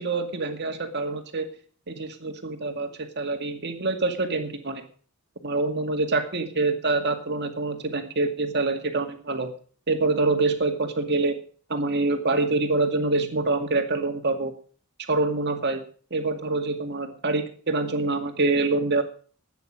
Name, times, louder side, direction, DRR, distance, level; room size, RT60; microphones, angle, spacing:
voice 1, 0.0-1.5 1.9-4.8 5.4-9.5 9.9-11.3 11.7-14.5 15.1-15.8 16.1-19.0, right 3 dB, 50° right, 5 dB, 2.2 m, -25 dB
13.0 x 9.4 x 6.3 m, 0.42 s
head